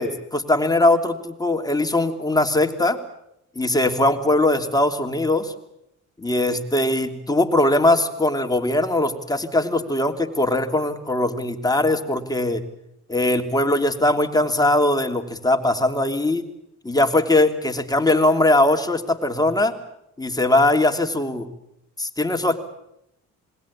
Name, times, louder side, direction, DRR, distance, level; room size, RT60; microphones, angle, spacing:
voice 1, 0.0-3.0 3.5-5.5 6.2-12.6 13.1-16.5 16.8-19.7 20.2-21.5 22.0-22.6, left 2 dB, 10° left, 5 dB, 2.9 m, -20 dB
27.5 x 21.0 x 8.5 m, 0.80 s
cardioid pair, 90°, 30 cm